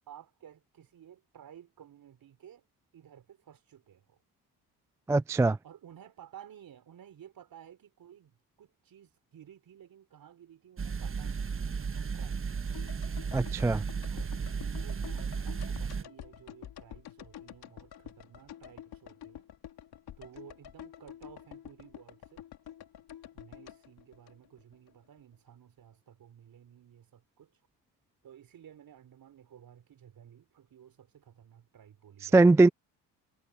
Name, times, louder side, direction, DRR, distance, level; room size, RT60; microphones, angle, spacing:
voice 1, 0.0-2.6 2.9-4.2 5.6-11.7 11.9-12.8 13.3-13.7 14.1-19.5 20.2-22.4 23.3-27.5 28.2-32.7, right 10 dB, 55° right, 4.6 m, -54 dB
voice 2, 5.1-5.6 13.3-13.8 32.3-32.7, right 2 dB, 10° right, 0.3 m, -21 dB
sound 1, 10.8-16.0, right 6 dB, 30° right, 1.5 m, -34 dB
sound 2, 12.7-24.9 25.2-25.3, left 11 dB, 65° left, 2.5 m, -49 dB
supercardioid pair, 70°, 41 cm